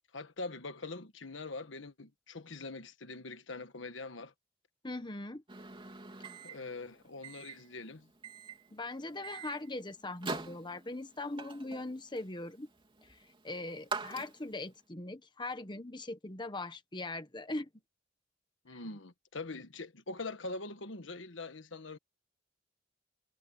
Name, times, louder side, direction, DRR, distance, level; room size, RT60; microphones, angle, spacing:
voice 1, 0.1-4.3 6.4-8.1 18.6-22.0, left 3 dB, 75° left, 1.5 m, -43 dB
voice 2, 4.8-5.4 8.7-12.7 13.0-17.7 18.7-18.8, left 2 dB, 25° left, 1.3 m, -40 dB
Microwave oven, 5.5-14.7, right 4 dB, 25° right, 3.3 m, -45 dB
head